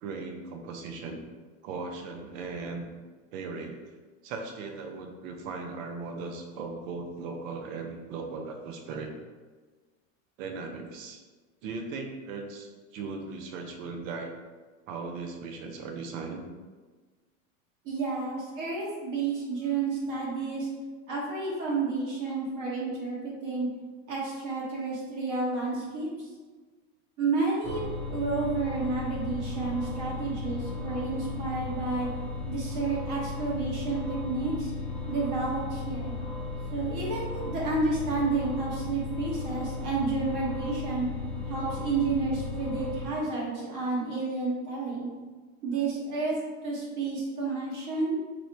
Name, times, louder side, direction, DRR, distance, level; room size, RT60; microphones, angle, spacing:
voice 1, 0.0-1.2 1.6-2.9 3.3-3.8 4.2-9.1 10.4-11.2 11.6-14.3 14.9-16.4, right 4 dB, 70° right, 4 dB, 0.7 m, -38 dB
voice 2, 17.8-20.7 21.1-23.7 24.1-26.3 27.2-27.8 28.1-32.1 32.5-34.7 35.1-36.1 36.7-41.1 41.5-45.1 45.6-46.3 46.6-48.2, right 3 dB, 50° right, -5 dB, 1.1 m, -30 dB
sound 1, 27.6-43.1, left 3 dB, ahead, 0.6 m, -35 dB
3.0 x 2.1 x 3.9 m, 1.3 s
supercardioid pair, 115°, 40 cm